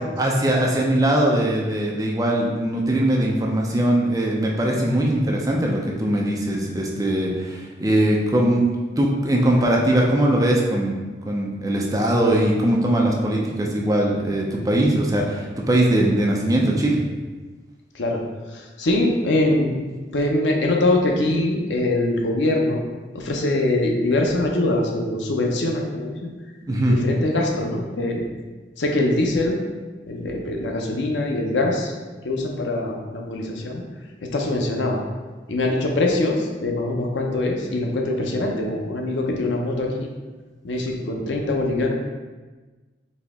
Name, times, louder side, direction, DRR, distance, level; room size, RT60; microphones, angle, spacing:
voice 1, 0.2-11.0 11.3-17.0 26.7-27.0, right 1 dB, 20° right, -2 dB, 0.5 m, -21 dB
voice 2, 18.5-19.8 20.1-22.8 23.1-26.3 26.9-28.3 28.8-29.6 30.1-31.9 32.2-33.8 34.2-35.0 35.5-40.1 40.6-41.9, left 2 dB, 75° left, 1 dB, 0.6 m, -23 dB
4.2 x 2.8 x 3.5 m, 1.3 s
head